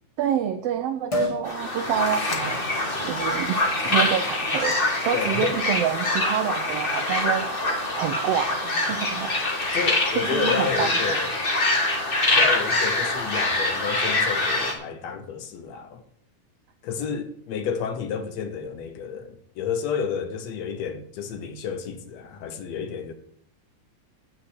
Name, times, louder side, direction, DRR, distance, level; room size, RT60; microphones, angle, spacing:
voice 1, 0.2-2.7 3.0-9.4 10.1-11.3, right 9 dB, 85° right, 1.4 m, -28 dB
Liquid, 1.1-1.5 2.0-11.7 12.0-12.1, left 1 dB, 10° left, 1.9 m, -39 dB
sound 1, 1.5-14.7, left 2 dB, 30° left, 1.1 m, -25 dB
voice 2, 5.1-5.6 9.7-11.3 12.3-16.0 16.8-23.1, left 6 dB, 70° left, 1.9 m, -31 dB
8.9 x 5.5 x 8.0 m
omnidirectional pair, 3.4 m